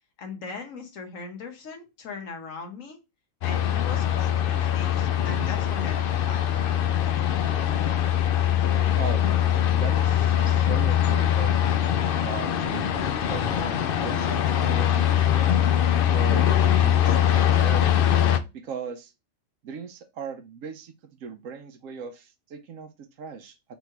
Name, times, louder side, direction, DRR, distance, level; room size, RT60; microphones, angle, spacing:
voice 1, 0.2-3.0 3.4-6.4, left 4 dB, 85° left, 4 dB, 1.4 m, -39 dB
sound 1, 3.4-18.4, left 10 dB, 60° left, 0.6 m, -22 dB
voice 2, 9.0-9.3 9.7-11.6 12.2-13.8 14.0-15.6 16.1-17.9 18.5-19.1 19.6-20.9 21.2-22.9 23.2-23.6, right 6 dB, 85° right, 6 dB, 1.1 m, -38 dB
3.6 x 3.1 x 4.5 m, 0.25 s
omnidirectional pair, 1.3 m